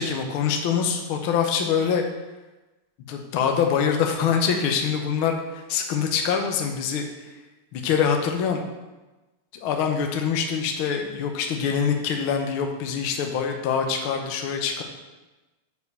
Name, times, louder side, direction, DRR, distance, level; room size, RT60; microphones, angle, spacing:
voice 1, 0.0-2.0 3.1-5.4 5.7-7.0 7.7-8.6 9.6-14.8, left 7 dB, 80° left, 3 dB, 1.2 m, -24 dB
7.4 x 4.7 x 6.7 m, 1.1 s
omnidirectional pair, 3.6 m